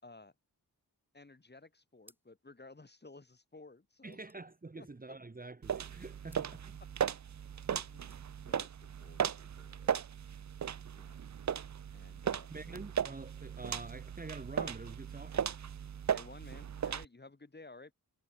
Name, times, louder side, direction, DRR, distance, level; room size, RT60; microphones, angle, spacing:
voice 1, 0.0-0.3 1.1-4.3 4.7-5.1 7.8-10.0 11.0-11.2 11.9-12.8 16.1-17.9, left 3 dB, 25° left, 5.6 m, -55 dB
sound 1, 2.0-2.6 2.9-3.0 3.2-5.4 6.2-6.6 7.7-8.3, right 1 dB, 5° right, 4.4 m, -66 dB
voice 2, 4.0-6.8 12.5-15.5, right 3 dB, 25° right, 1.7 m, -47 dB
sound 2, 5.6-17.1, right 8 dB, 50° right, 0.7 m, -37 dB
wide cardioid pair, 130°, 37 cm